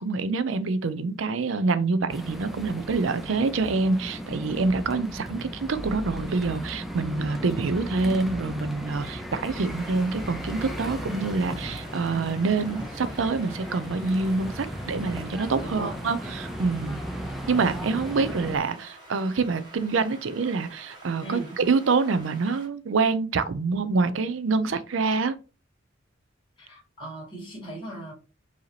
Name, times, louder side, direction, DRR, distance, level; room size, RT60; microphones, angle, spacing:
voice 1, 0.0-17.0 17.5-25.4, right 4 dB, 75° right, 0.5 m, -26 dB
sound 1, 2.1-18.6, equal, ahead, 0.5 m, -36 dB
sound 2, 9.5-22.7, right 1 dB, 20° right, 1.4 m, -49 dB
voice 2, 15.6-16.0 17.9-18.2 21.2-21.5 26.6-28.1, right 1 dB, 25° left, 2.1 m, -38 dB
4.8 x 2.8 x 3.2 m
head